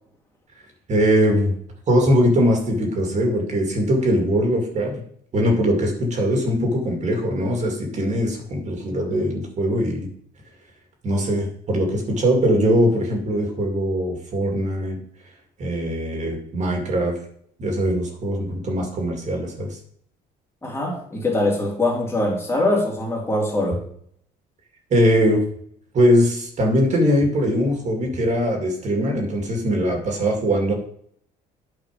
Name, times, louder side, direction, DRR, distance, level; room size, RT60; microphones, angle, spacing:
voice 1, 0.9-1.6 1.9-5.0 5.3-10.1 11.0-15.0 15.6-17.2 17.6-19.8 24.9-25.4 25.9-30.7, equal, 45° right, 1 dB, 2.3 m, -21 dB
voice 2, 20.6-23.9, left 2 dB, 15° left, -2 dB, 3.0 m, -23 dB
9.0 x 5.0 x 5.1 m, 0.64 s
cardioid pair, 110°, 17 cm